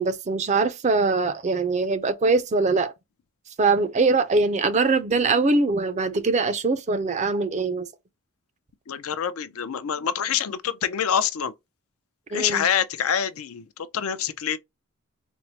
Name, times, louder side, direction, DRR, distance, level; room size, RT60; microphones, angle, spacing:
voice 1, 0.0-2.9 3.6-7.9 12.3-12.7, right 3 dB, 30° right, 0.4 m, -22 dB
voice 2, 8.9-11.5 12.3-14.6, left 8 dB, 80° left, 0.5 m, -26 dB
4.4 x 2.0 x 2.7 m
head